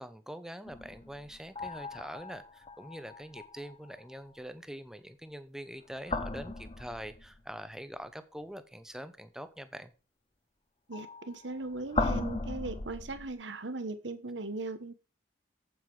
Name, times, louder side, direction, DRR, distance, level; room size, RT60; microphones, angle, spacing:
voice 1, 0.0-9.9, equal, 5° right, 0.7 m, -44 dB
sound 1, 0.6-4.1 5.9-7.5 10.9-13.3, left 3 dB, 30° left, 0.8 m, -37 dB
voice 2, 10.9-14.9, right 2 dB, 85° right, 1.2 m, -38 dB
8.4 x 8.1 x 4.8 m
head